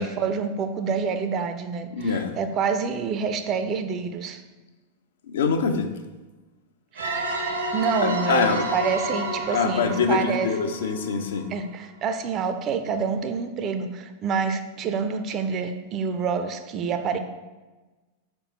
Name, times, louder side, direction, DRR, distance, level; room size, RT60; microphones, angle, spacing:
voice 1, 0.0-4.4 6.9-7.4 7.7-10.5 11.5-17.2, right 6 dB, 30° right, 9 dB, 0.5 m, -27 dB
voice 2, 1.9-2.4 5.3-5.9 8.0-8.6 9.5-11.5, left 5 dB, 60° left, 6 dB, 0.6 m, -24 dB
sound 1, 7.0-11.5, right 1 dB, 70° right, 0.9 m, -30 dB
5.1 x 4.5 x 4.2 m, 1.2 s
figure-of-eight pair, 90°, 0 cm